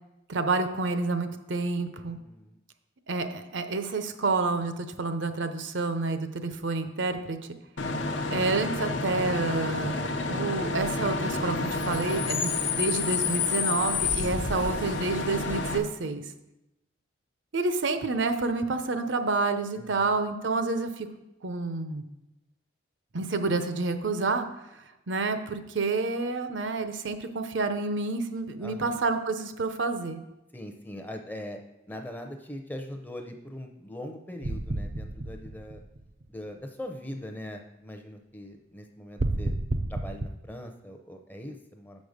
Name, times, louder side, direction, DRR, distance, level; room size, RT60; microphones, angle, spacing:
voice 1, 0.3-2.2 3.1-7.4 8.3-10.0 10.3-16.2 17.5-21.1 21.4-22.0 23.1-24.5 25.1-30.2, right 3 dB, 75° right, 8 dB, 0.7 m, -29 dB
voice 2, 2.1-2.6 19.7-20.2 28.6-29.0 30.5-31.6 31.9-35.8 36.3-39.5 39.9-42.0, left 1 dB, 10° left, 4 dB, 0.6 m, -41 dB
Bus / Idling / Screech, 7.8-15.8, left 4 dB, 80° left, 0.8 m, -29 dB
sound 1, 34.4-36.3 39.2-40.3, right 2 dB, 40° right, 0.4 m, -31 dB
6.6 x 5.3 x 6.5 m, 0.92 s
head